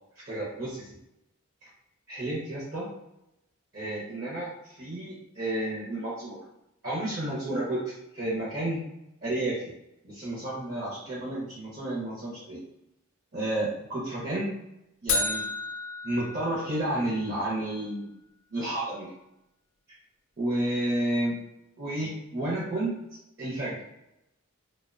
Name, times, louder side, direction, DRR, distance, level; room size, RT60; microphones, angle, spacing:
voice 1, 0.3-1.0 1.6-1.7 2.1-2.9 3.7-6.4 6.8-8.8 9.2-9.7 10.0-12.6 13.3-14.5 15.0-15.4 16.0-18.1 18.5-19.1 19.9-20.0 20.4-21.4 21.8-22.9 23.4-23.8, right 1 dB, 45° right, -6 dB, 0.5 m, -31 dB
sound 1, 15.1-17.2, left 3 dB, 75° left, 0.4 m, -31 dB
2.6 x 2.0 x 2.4 m, 0.86 s
head